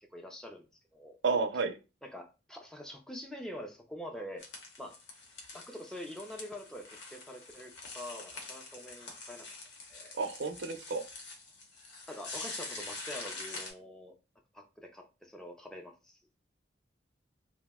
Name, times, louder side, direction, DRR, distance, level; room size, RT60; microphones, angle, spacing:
voice 1, 0.1-0.6 0.9-1.2 2.0-4.5 4.8-5.0 5.5-9.5 9.9-10.1 12.1-14.2 14.5-16.2, left 1 dB, 5° left, 3 dB, 0.4 m, -45 dB
voice 2, 1.2-1.7 10.1-11.0, right 4 dB, 65° right, 8 dB, 0.5 m, -31 dB
sound 1, 4.4-13.7, left 3 dB, 65° left, 0.8 m, -45 dB
2.6 x 2.0 x 3.5 m, 0.30 s
head